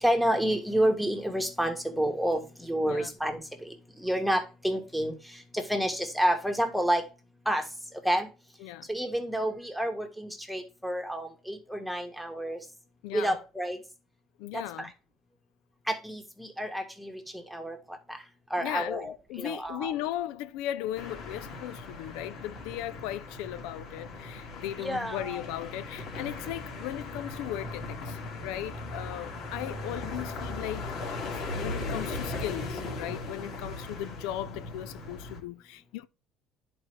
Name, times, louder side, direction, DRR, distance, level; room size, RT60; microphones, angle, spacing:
voice 1, 0.0-3.7 4.0-7.0 7.4-7.6 8.0-8.3 8.9-12.6 13.1-13.8 14.5-14.9 15.9-18.2 18.5-19.9 24.8-25.4 33.4-33.6, right 1 dB, ahead, 1.5 m, -29 dB
voice 2, 13.0-13.4 14.4-14.9 18.6-30.8 31.5-36.1, left 13 dB, 85° left, 0.4 m, -37 dB
sound 1, 21.0-35.4, left 2 dB, 65° left, 2.1 m, -38 dB
10.5 x 4.3 x 3.2 m
cardioid pair, 110°, 0 cm